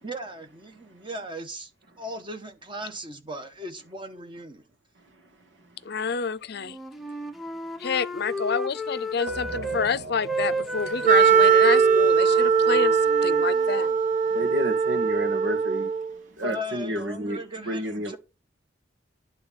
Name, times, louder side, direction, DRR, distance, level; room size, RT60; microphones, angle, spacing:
voice 1, 0.0-1.7 2.0-4.6 16.4-18.2, equal, 25° right, 1.3 m, -37 dB
voice 2, 5.9-6.8 7.8-13.9, left 5 dB, 60° left, 0.6 m, -28 dB
Wind instrument woodwind instrument, 6.6-9.9 10.2-14.0, equal, ahead, 0.7 m, -33 dB
sound 1, 9.3-14.6, right 2 dB, 70° right, 1.7 m, -42 dB
Wind instrument woodwind instrument 2, 11.0-16.1, right 6 dB, 45° right, 0.6 m, -20 dB
voice 3, 14.3-15.9 16.4-17.4 17.7-18.2, equal, 90° right, 2.0 m, -30 dB
10.5 x 3.8 x 7.5 m
head